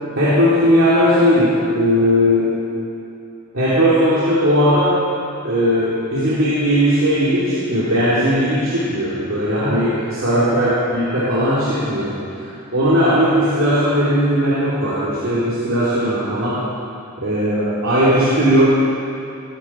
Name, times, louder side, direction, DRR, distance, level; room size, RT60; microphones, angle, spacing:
voice 1, 0.2-2.5 3.5-5.0 5.4-12.1 12.7-16.6 17.2-18.7, equal, 65° right, -10 dB, 3.1 m, -17 dB
18.0 x 13.5 x 4.5 m, 2.7 s
head